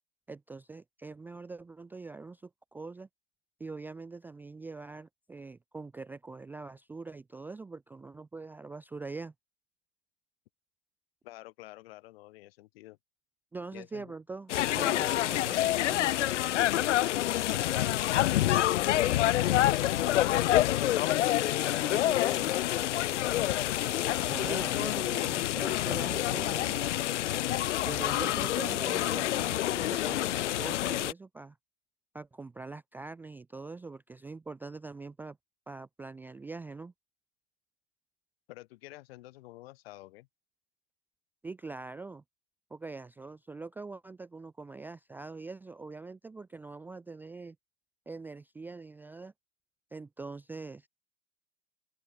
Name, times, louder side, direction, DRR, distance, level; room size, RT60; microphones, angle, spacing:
voice 1, 0.3-3.1 3.6-9.3 13.5-16.3 21.8-22.5 24.3-26.9 27.8-31.6 32.1-35.4 35.7-36.9 41.4-42.2 42.7-47.6 48.1-49.3 49.9-50.9, right 3 dB, 5° right, 0.6 m, -43 dB
voice 2, 11.2-13.0 13.7-14.1 18.0-20.1 21.8-23.4 38.5-40.3, left 18 dB, 55° left, 5.1 m, -48 dB
sound 1, 14.5-31.1, left 14 dB, 75° left, 0.8 m, -27 dB
open air
hypercardioid pair, 135°, 36 cm